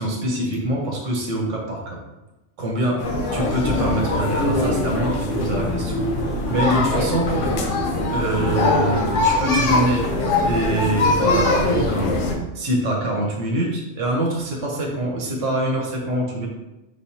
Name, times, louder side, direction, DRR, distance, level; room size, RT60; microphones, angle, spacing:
voice 1, 0.0-2.0 2.6-3.1 3.3-6.0 6.3-7.3 8.1-16.5, right 1 dB, 85° right, -1 dB, 1.3 m, -25 dB
sound 1, 3.0-12.4, left 2 dB, 90° left, 1.1 m, -22 dB
4.9 x 3.3 x 2.8 m, 0.99 s
omnidirectional pair, 1.2 m